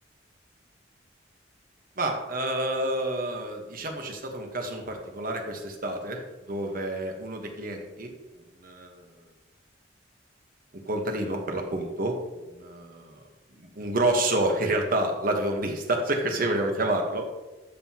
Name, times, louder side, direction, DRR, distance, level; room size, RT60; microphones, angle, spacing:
voice 1, 2.0-9.1 10.8-13.3 13.6-17.4, right 1 dB, 50° right, 3 dB, 1.2 m, -29 dB
12.0 x 5.8 x 2.9 m, 1.1 s
head